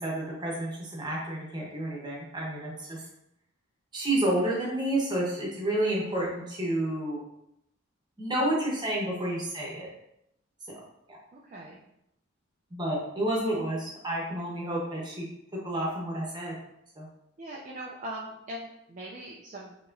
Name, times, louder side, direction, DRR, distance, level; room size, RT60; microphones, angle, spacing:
voice 1, 0.0-3.0 3.9-7.2 8.2-9.9 11.1-11.2 12.7-15.2 15.6-16.5 17.0-17.1, right 1 dB, 20° right, -3 dB, 1.0 m, -30 dB
voice 2, 11.3-11.8 17.4-19.9, right 1 dB, 35° right, -3 dB, 0.4 m, -41 dB
4.7 x 3.0 x 2.6 m, 0.80 s
head